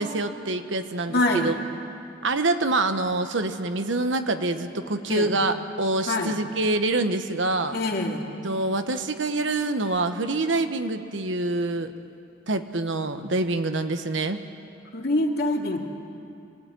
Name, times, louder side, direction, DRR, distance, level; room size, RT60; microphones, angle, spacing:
voice 1, 0.0-1.5 2.2-7.8 8.4-11.9 12.5-14.4, right 2 dB, 75° right, 8 dB, 1.3 m, -26 dB
voice 2, 1.1-1.5 5.1-5.3 6.1-6.4 7.7-8.3 14.9-15.8, left 2 dB, 60° left, 1 dB, 2.4 m, -25 dB
25.5 x 17.0 x 9.5 m, 2.5 s
head